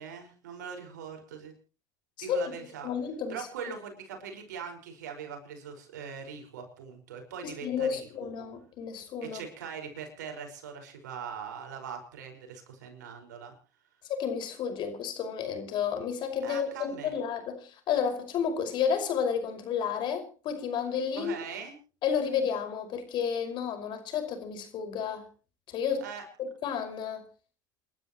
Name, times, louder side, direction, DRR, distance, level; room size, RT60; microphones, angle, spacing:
voice 1, 0.0-1.5 2.2-2.9 3.3-8.3 9.2-13.5 16.4-17.1 21.1-21.8 26.0-26.2, right 6 dB, 85° right, 5.2 m, -41 dB
voice 2, 2.2-2.5 2.8-3.7 7.4-9.4 14.1-21.3 22.0-25.3 25.7-26.1 26.4-27.3, left 7 dB, 55° left, 5.4 m, -31 dB
29.5 x 12.5 x 3.1 m
hypercardioid pair, 80°, 9 cm